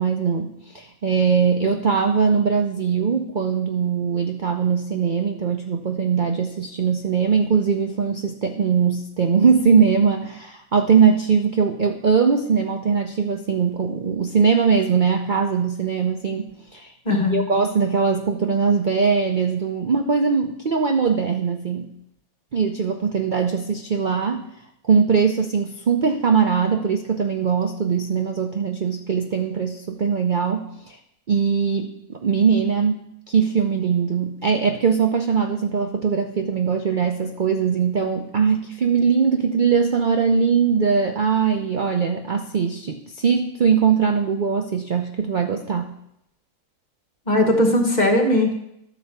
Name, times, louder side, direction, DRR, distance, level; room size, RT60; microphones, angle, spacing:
voice 1, 0.0-16.5 16.7-21.9 22.5-24.5 24.8-31.0 31.3-33.0 33.3-45.9, right 6 dB, 50° right, 5 dB, 0.6 m, -21 dB
voice 2, 17.0-17.5 47.3-48.5, left 1 dB, 30° left, 1 dB, 1.5 m, -19 dB
12.5 x 4.6 x 6.5 m, 0.79 s
omnidirectional pair, 1.5 m